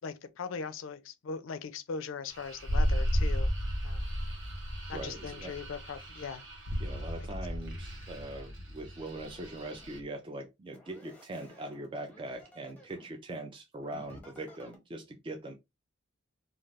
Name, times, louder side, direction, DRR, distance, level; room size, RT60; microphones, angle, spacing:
voice 1, 0.0-3.5 3.8-4.1 4.9-6.4 7.5-7.6, left 5 dB, 65° left, 0.4 m, -40 dB
sound 1, 2.3-10.0, equal, 60° right, 1.0 m, -34 dB
voice 2, 4.9-5.5 6.8-15.5, right 2 dB, 25° right, 0.3 m, -41 dB
sound 2, 9.2-10.1 10.7-13.1 13.8-14.8, left 1 dB, 5° left, 0.6 m, -55 dB
2.4 x 2.3 x 3.2 m
head